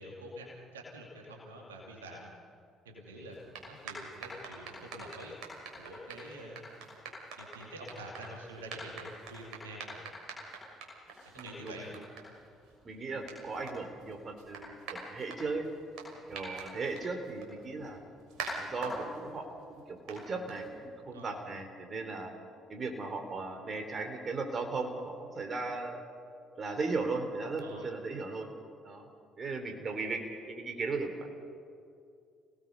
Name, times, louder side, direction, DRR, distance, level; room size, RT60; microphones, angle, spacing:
voice 1, 0.0-2.3 2.8-3.4 3.7-5.4 5.7-6.9 7.4-10.0 11.2-11.9 16.1-16.3 21.1-21.4 27.6-27.9, right 1 dB, 85° right, -1 dB, 2.5 m, -47 dB
sound 1, 3.3-21.0, right 2 dB, 65° right, 6.3 m, -46 dB
voice 2, 11.4-12.0 12.8-15.7 16.3-18.0 18.5-22.3 22.7-26.0 26.6-28.5 28.8-29.1 29.4-30.2 30.5-31.2, right 3 dB, 40° right, 5 dB, 3.9 m, -37 dB
30.0 x 18.5 x 5.5 m, 2.4 s
hypercardioid pair, 50°, 0 cm